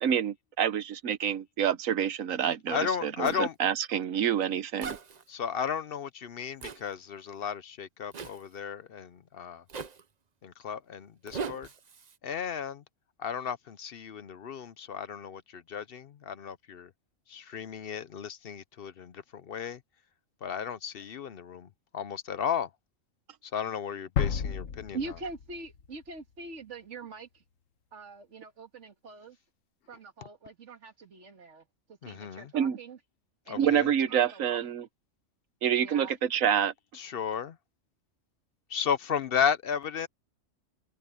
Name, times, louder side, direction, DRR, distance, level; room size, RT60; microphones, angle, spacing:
voice 1, 0.0-5.0 32.5-32.8 33.6-34.9 35.6-36.7, right 9 dB, 90° right, 1.3 m, -27 dB
voice 2, 2.7-3.6 5.3-9.6 10.4-11.7 12.2-12.8 13.2-16.9 17.3-19.8 20.4-22.7 23.4-25.2 32.0-32.5 33.5-33.9 36.9-37.6 38.7-40.1, left 7 dB, 55° left, 0.7 m, -34 dB
Zipper (clothing), 3.2-3.4 4.8-5.2 6.6-6.8 8.1-8.4 9.7-10.0 11.3-12.2, right 5 dB, 40° right, 0.8 m, -39 dB
sound 1, 24.2-26.0, left 7 dB, 80° left, 1.5 m, -32 dB
voice 3, 24.9-27.4 27.9-29.4 29.9-33.0 33.5-33.7 34.1-34.6 35.8-36.1, right 3 dB, 65° right, 2.2 m, -43 dB
omnidirectional pair, 1.3 m